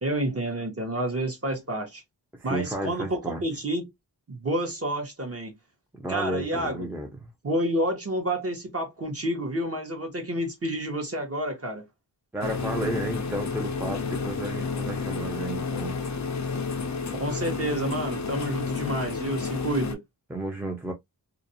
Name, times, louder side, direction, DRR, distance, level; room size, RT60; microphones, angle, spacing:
voice 1, 0.0-2.0 2.4-3.9 4.3-5.5 6.1-6.9 7.4-11.8 17.1-20.0, right 1 dB, 35° right, 0.9 m, -29 dB
voice 2, 2.4-3.4 6.0-7.3 12.3-16.0 20.3-20.9, right 1 dB, 5° right, 0.6 m, -32 dB
sound 1, 12.4-19.9, left 4 dB, 45° left, 0.5 m, -31 dB
2.5 x 2.0 x 2.7 m
wide cardioid pair, 75°, 43 cm